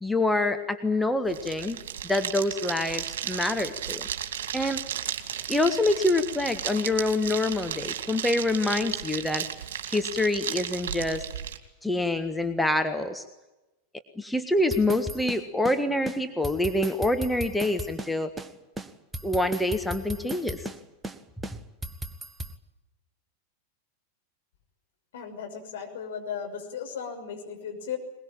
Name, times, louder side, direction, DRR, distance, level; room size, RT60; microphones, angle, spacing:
voice 1, 0.0-1.8 2.0-4.1 4.5-4.8 5.5-9.4 9.9-11.2 11.8-13.2 14.2-18.3 19.2-20.7, left 2 dB, 5° left, 8 dB, 1.5 m, -26 dB
sound 1, 1.2-11.6, right 9 dB, 60° right, 2.7 m, -34 dB
sound 2, 14.7-15.8 16.1-16.2 16.4-18.1 18.4-18.5 18.8-20.8 21.0-21.2 21.4-22.5, right 1 dB, 10° right, 1.5 m, -36 dB
voice 2, 25.1-28.0, left 7 dB, 60° left, 3 dB, 6.3 m, -36 dB
22.0 x 22.0 x 9.0 m, 1.0 s
figure-of-eight pair, 90°, 0 cm